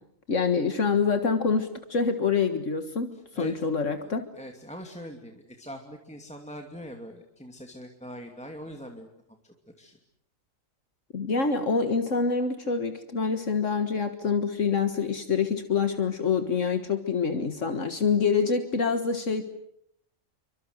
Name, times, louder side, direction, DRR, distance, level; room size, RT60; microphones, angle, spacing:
voice 1, 0.3-4.3 11.1-19.4, left 5 dB, 70° left, 8 dB, 2.0 m, -26 dB
voice 2, 3.1-3.5 4.0-4.1 4.3-9.1 9.4-10.0, equal, 5° left, 3 dB, 2.5 m, -42 dB
28.5 x 25.0 x 8.1 m, 0.74 s
omnidirectional pair, 1.4 m